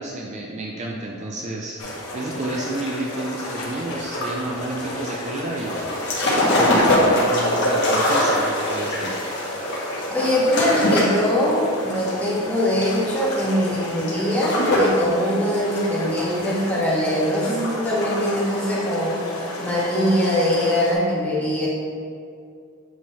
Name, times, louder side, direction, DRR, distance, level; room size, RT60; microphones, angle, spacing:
voice 1, 0.0-1.8 2.1-5.8 6.6-9.1, right 2 dB, 30° right, -2 dB, 0.5 m, -30 dB
sound 1, 1.8-20.9, left 1 dB, 85° left, 1.3 m, -33 dB
sound 2, 5.6-15.0 15.4-17.1 17.5-18.4 18.7-18.9, left 1 dB, 50° left, 1.4 m, -22 dB
voice 2, 10.1-19.2 19.6-21.7, equal, 5° left, -7 dB, 1.4 m, -22 dB
7.6 x 3.8 x 4.1 m, 2.3 s
head